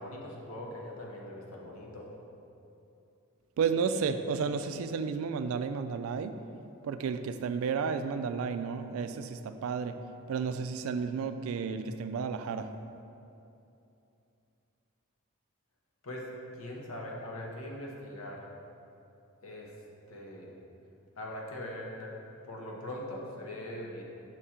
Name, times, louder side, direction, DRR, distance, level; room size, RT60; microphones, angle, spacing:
voice 1, 0.0-2.1 16.0-16.3 16.6-18.4 19.4-19.7 20.1-20.5 21.2-22.1 22.4-24.0, left 1 dB, 90° left, -1 dB, 0.9 m, -41 dB
voice 2, 3.6-6.3 6.8-9.9 10.3-12.7, right 5 dB, 80° right, 9 dB, 0.3 m, -32 dB
6.0 x 3.6 x 4.3 m, 2.7 s
head